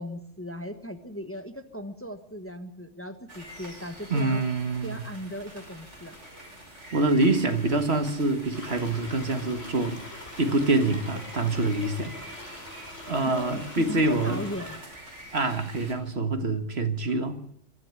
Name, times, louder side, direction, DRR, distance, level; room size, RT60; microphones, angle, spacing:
voice 1, 0.0-4.4 4.8-6.2 13.2-14.8 17.1-17.2, equal, 10° left, 1.3 m, -38 dB
sound 1, 3.3-15.9, right 1 dB, 85° right, 6.1 m, -46 dB
voice 2, 4.1-5.0 6.9-10.0 10.4-12.2 13.1-14.4 15.3-17.4, right 2 dB, 60° right, 1.9 m, -25 dB
sound 2, 8.5-14.8, left 2 dB, 60° left, 3.9 m, -44 dB
23.5 x 13.0 x 9.5 m
omnidirectional pair, 1.2 m